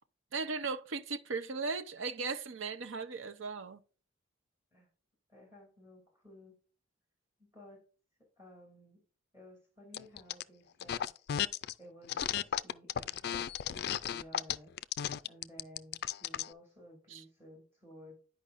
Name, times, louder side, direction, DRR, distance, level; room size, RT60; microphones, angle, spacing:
voice 1, 0.3-3.8 17.1-17.2, right 4 dB, 75° right, 0.7 m, -37 dB
voice 2, 5.3-6.6 7.4-7.8 8.4-9.0 9.3-11.1 11.8-14.7 15.2-18.2, equal, 15° right, 2.8 m, -55 dB
sound 1, 9.9-10.4 10.8-11.7 12.1-16.5, left 10 dB, 55° left, 0.3 m, -34 dB
10.0 x 5.2 x 2.5 m
head